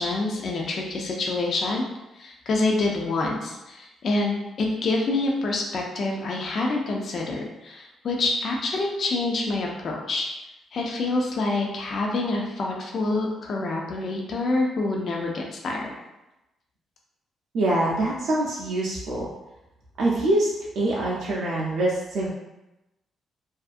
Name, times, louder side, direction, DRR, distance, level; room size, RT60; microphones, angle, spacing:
voice 1, 0.0-1.8 2.1-10.3 10.7-15.9, left 2 dB, 40° left, -1 dB, 0.3 m, -27 dB
voice 2, 17.5-19.3 20.0-20.5 20.8-22.3, right 1 dB, 60° right, -6 dB, 0.4 m, -24 dB
2.5 x 2.4 x 2.4 m, 0.96 s
cardioid pair, 180°, 0 cm